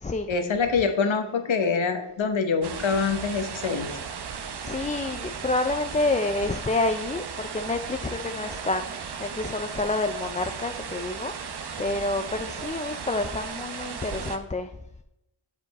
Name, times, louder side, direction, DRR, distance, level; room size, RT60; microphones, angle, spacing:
voice 1, 0.3-3.9, left 5 dB, 80° left, 7 dB, 1.1 m, -25 dB
sound 1, 2.6-14.4, right 6 dB, 60° right, 0.8 m, -36 dB
voice 2, 4.6-14.7, left 2 dB, 20° left, 6 dB, 0.4 m, -28 dB
7.5 x 5.0 x 4.1 m, 0.86 s
cardioid pair, 65°, 46 cm